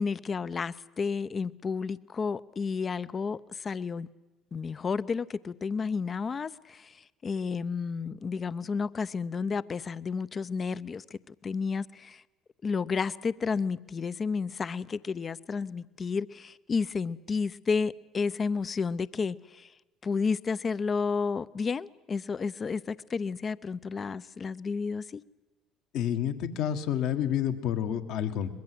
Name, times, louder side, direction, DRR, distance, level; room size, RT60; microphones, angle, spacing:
voice 1, 0.0-4.1 4.5-12.2 12.6-19.7 20.0-25.2, left 5 dB, 35° left, 0.7 m, -31 dB
voice 2, 25.9-28.5, left 10 dB, 65° left, 1.6 m, -29 dB
23.0 x 21.5 x 7.8 m
hypercardioid pair, 65°, 0 cm